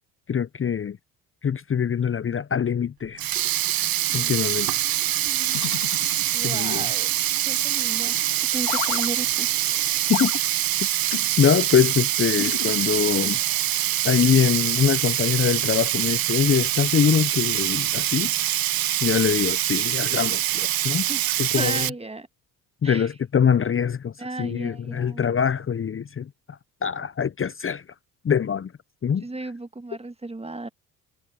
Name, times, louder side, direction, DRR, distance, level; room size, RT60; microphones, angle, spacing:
voice 1, 0.3-1.0 1.4-3.2 4.1-4.8 6.4-6.9 10.1-10.3 11.4-13.4 14.0-18.3 19.0-21.1 21.4-21.9 22.8-26.3 26.8-27.8 28.2-28.7 29.0-29.2, left 7 dB, 30° left, 1.0 m, -23 dB
Sink (filling or washing), 3.0-21.9, right 13 dB, 50° right, 1.4 m, -24 dB
voice 2, 5.2-5.6 6.3-7.1 7.5-9.5 21.1-21.2 21.6-22.3 22.8-23.1 24.2-25.2 29.2-30.7, right 2 dB, 15° right, 1.8 m, -35 dB
sound 1, 5.5-6.7 8.6-9.1 10.1-10.4 11.1-11.3 12.4-13.2, left 20 dB, 80° left, 4.0 m, -32 dB
hypercardioid pair, 55°, 45 cm